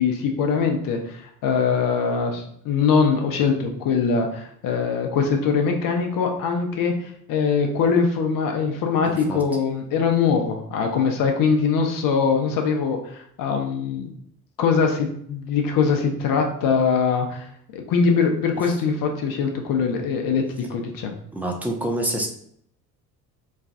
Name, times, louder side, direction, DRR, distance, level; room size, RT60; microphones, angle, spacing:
voice 1, 0.0-14.1 14.6-17.5 17.7-20.4 20.7-21.1, left 5 dB, 45° left, 3 dB, 0.6 m, -22 dB
voice 2, 9.1-9.4 21.3-22.3, right 1 dB, 5° right, 1 dB, 0.4 m, -27 dB
3.2 x 2.2 x 2.6 m, 0.67 s
figure-of-eight pair, 55°, 47 cm